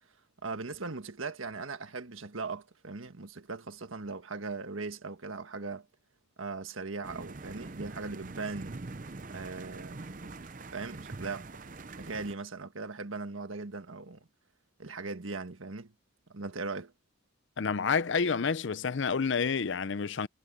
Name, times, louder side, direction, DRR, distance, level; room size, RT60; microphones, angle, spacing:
voice 1, 0.4-5.9 6.4-8.8 9.3-10.3 10.6-11.5 12.0-14.3 14.8-15.9 16.3-16.9, right 3 dB, 90° right, 1.6 m, -39 dB
sound 1, 7.0-12.3, right 3 dB, 40° right, 0.7 m, -44 dB
voice 2, 17.6-20.3, left 5 dB, 70° left, 0.6 m, -29 dB
head